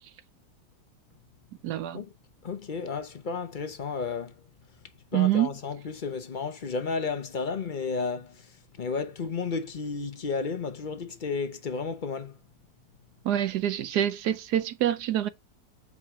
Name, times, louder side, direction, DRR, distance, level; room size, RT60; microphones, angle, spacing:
voice 1, 1.6-2.0 5.1-5.5 13.2-15.3, right 12 dB, 70° right, 1.2 m, -26 dB
voice 2, 2.4-4.3 5.1-8.3 8.8-12.3, left 4 dB, 45° left, 0.7 m, -32 dB
8.0 x 4.9 x 3.6 m
omnidirectional pair, 1.9 m